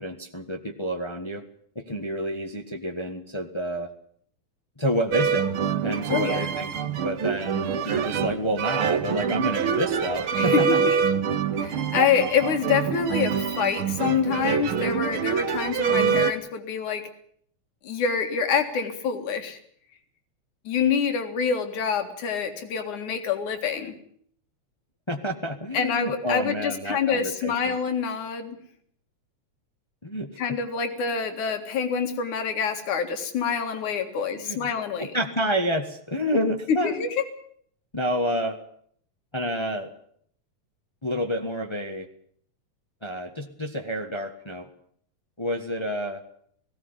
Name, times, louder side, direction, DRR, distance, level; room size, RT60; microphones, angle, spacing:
voice 1, 0.0-1.4 1.7-3.9 4.8-5.5 5.8-6.7 7.0-10.8 25.1-27.8 30.0-30.6 31.0-31.1 34.3-34.7 35.0-37.1 37.9-38.6 39.3-39.9 41.0-42.1 43.0-44.7 45.4-46.2, equal, 40° left, 5 dB, 0.4 m, -29 dB
sound 1, 5.1-16.3, right 7 dB, 60° right, 1.6 m, -25 dB
voice 2, 6.1-6.5 10.3-11.0 11.6-17.1 17.8-19.6 20.6-23.9 25.7-28.6 30.4-35.2 36.7-37.1, left 6 dB, 75° left, 7 dB, 3.4 m, -26 dB
18.5 x 17.0 x 9.8 m, 0.63 s
omnidirectional pair, 3.5 m